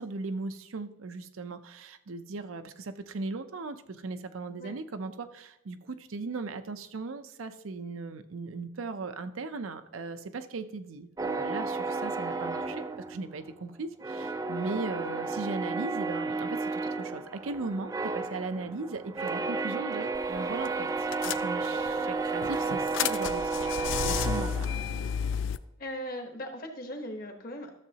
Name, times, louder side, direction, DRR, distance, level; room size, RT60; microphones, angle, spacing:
voice 1, 0.0-23.8 24.0-24.7, right 3 dB, 85° right, 9 dB, 0.6 m, -38 dB
sound 1, 11.2-13.6 14.0-25.2, right 3 dB, 15° right, 0.4 m, -32 dB
sound 2, 20.1-20.4 20.6-20.7 21.1-21.9 22.4-25.6, left 8 dB, 65° left, 0.3 m, -32 dB
voice 2, 25.8-27.7, equal, 45° left, 4 dB, 1.1 m, -38 dB
13.0 x 7.1 x 2.8 m, 0.86 s
head